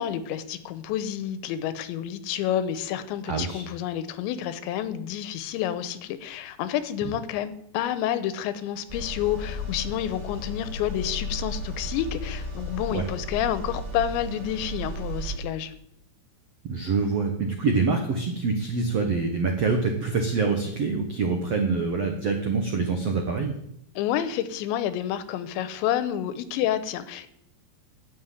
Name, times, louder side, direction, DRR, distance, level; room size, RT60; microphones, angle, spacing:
voice 1, 0.0-15.7 24.0-27.3, left 11 dB, 90° left, 13 dB, 3.2 m, -29 dB
voice 2, 3.3-3.6 7.0-7.1 12.9-13.1 16.6-23.5, right 4 dB, 90° right, 3 dB, 1.3 m, -25 dB
sound 1, 8.9-15.4, left 1 dB, 10° right, 2.4 m, -34 dB
11.5 x 7.4 x 9.3 m, 0.74 s
omnidirectional pair, 5.1 m